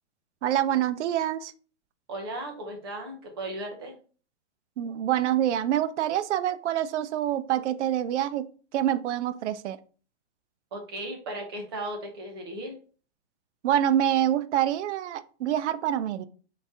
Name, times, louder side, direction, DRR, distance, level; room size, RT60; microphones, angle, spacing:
voice 1, 0.4-1.5 4.8-8.5 8.7-9.8 13.6-16.2, right 11 dB, 75° right, 13 dB, 0.5 m, -26 dB
voice 2, 2.1-3.9 10.7-12.8, right 1 dB, 20° right, 2 dB, 0.5 m, -36 dB
3.8 x 2.7 x 3.5 m, 0.39 s
hypercardioid pair, 170°, 35 cm